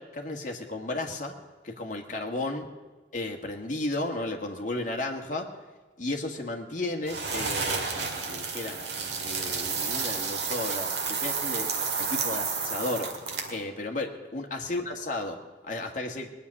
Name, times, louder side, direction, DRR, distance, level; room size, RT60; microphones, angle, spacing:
voice 1, 0.0-1.4 1.6-2.7 3.1-5.5 6.0-13.2 13.5-15.4 15.6-16.3, left 2 dB, 45° left, 2 dB, 1.7 m, -34 dB
sound 1, 7.1-13.6, right 5 dB, 65° right, 2.0 m, -31 dB
19.5 x 6.8 x 9.9 m, 1.3 s
head